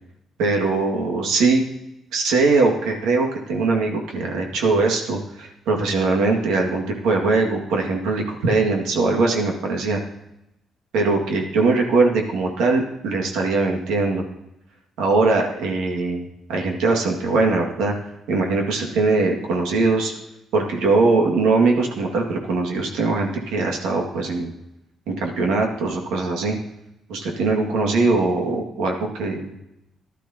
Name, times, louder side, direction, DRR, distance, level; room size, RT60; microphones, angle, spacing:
voice 1, 0.4-1.6 2.1-10.0 10.9-14.2 15.0-17.9 18.3-20.1 20.5-24.5 25.1-26.6 27.1-29.5, right 3 dB, 90° right, 1 dB, 2.0 m, -21 dB
15.5 x 11.5 x 2.9 m, 0.87 s
cardioid pair, 90°, 0 cm